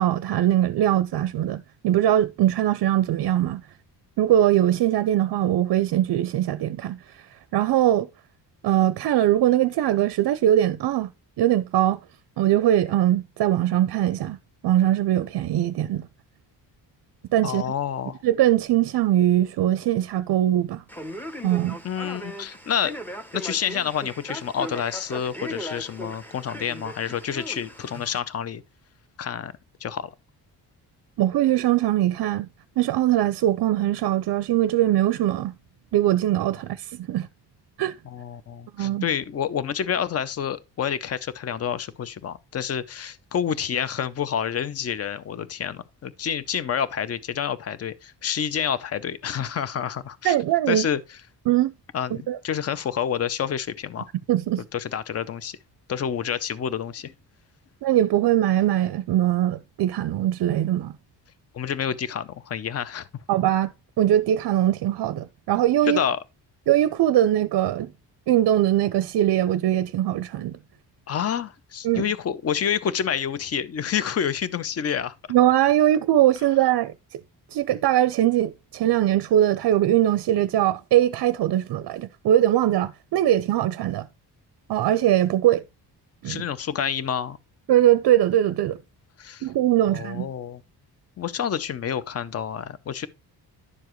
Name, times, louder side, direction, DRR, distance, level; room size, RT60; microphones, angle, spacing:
voice 1, 0.0-3.6 4.2-7.2 7.5-8.1 8.6-11.1 11.4-12.0 12.4-14.4 14.6-16.1 17.3-17.6 18.2-20.8 21.4-21.8 31.2-32.5 32.8-35.5 35.9-37.3 37.8-38.0 38.8-39.1 50.2-50.9 51.5-51.7 52.3-52.4 54.3-54.6 57.8-60.9 63.3-66.0 66.7-67.9 68.3-70.6 71.8-72.1 75.3-77.2 77.5-84.1 84.7-85.6 86.2-86.4 87.7-88.8 89.4-90.3, right 12 dB, 60° right, 0.5 m, -21 dB
voice 2, 17.4-18.2 21.8-22.9 23.3-28.6 29.2-29.5 29.8-30.1 38.1-50.4 50.7-51.0 51.9-54.1 54.7-55.6 55.9-57.1 61.5-63.1 65.9-66.2 71.1-75.1 86.2-87.4 89.2-89.5 89.9-90.6 91.2-93.1, left 8 dB, 35° left, 0.6 m, -28 dB
Male speech man speaking, 20.9-28.2, equal, 5° left, 0.8 m, -38 dB
11.0 x 7.0 x 3.0 m
wide cardioid pair, 155°, 41 cm